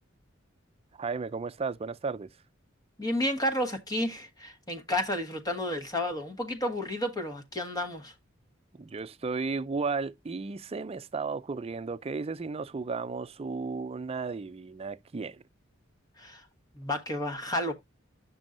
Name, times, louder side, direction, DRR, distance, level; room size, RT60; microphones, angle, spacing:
voice 1, 0.9-2.3 8.8-15.4, right 4 dB, 30° right, 0.4 m, -34 dB
voice 2, 3.0-8.1 16.2-16.4 16.7-17.7, left 1 dB, 20° left, 1.2 m, -31 dB
9.0 x 6.1 x 2.5 m
head